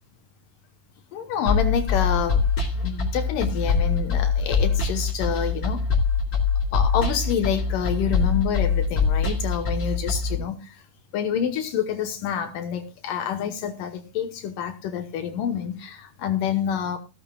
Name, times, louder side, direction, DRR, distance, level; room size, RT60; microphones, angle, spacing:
voice 1, 1.1-2.5 2.8-5.9 6.7-10.8 11.1-17.0, left 8 dB, 75° left, 2.6 m, -27 dB
sound 1, 1.5-10.3, left 5 dB, 40° left, 2.4 m, -23 dB
15.5 x 13.0 x 2.3 m
omnidirectional pair, 4.0 m